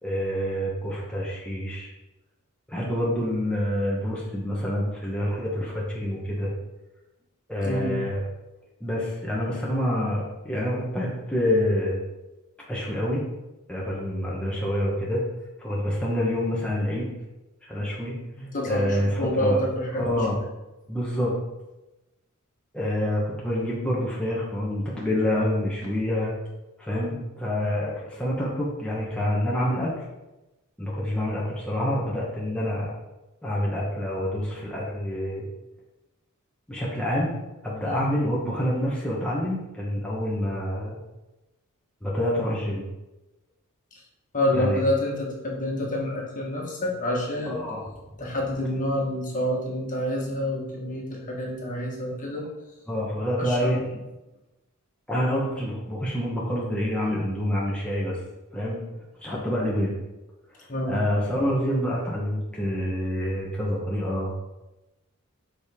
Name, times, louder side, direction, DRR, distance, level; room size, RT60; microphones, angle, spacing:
voice 1, 0.0-1.9 2.7-6.5 7.5-8.2 8.8-12.0 12.7-13.2 13.7-15.2 15.6-17.1 17.6-18.2 18.6-19.6 20.0-20.4 20.9-21.4 22.7-26.3 26.8-29.9 30.8-32.9 33.4-35.5 36.7-37.4 37.6-41.0 42.0-42.8 44.5-44.8 47.4-47.8 52.9-53.8 55.1-58.2 58.5-58.8 59.2-60.0 60.5-64.4, equal, 5° left, -6 dB, 1.2 m, -27 dB
voice 2, 7.6-8.0 18.4-20.3 37.8-38.1 44.3-47.6 48.2-52.5 53.4-54.0 60.7-61.0, left 1 dB, 40° left, -2 dB, 1.6 m, -28 dB
7.3 x 5.1 x 3.6 m, 1.0 s
head